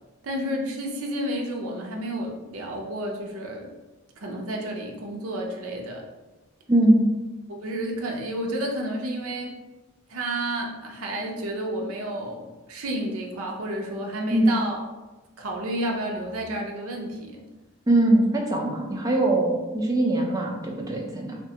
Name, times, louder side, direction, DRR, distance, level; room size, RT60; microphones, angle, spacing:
voice 1, 0.2-3.7 4.2-6.0 7.5-9.6 10.1-14.8 15.4-17.5, right 1 dB, 75° right, 1 dB, 0.5 m, -31 dB
voice 2, 6.7-7.0 14.3-14.5 17.9-21.4, right 1 dB, 15° right, -1 dB, 0.4 m, -22 dB
2.8 x 2.2 x 2.7 m, 1.1 s
head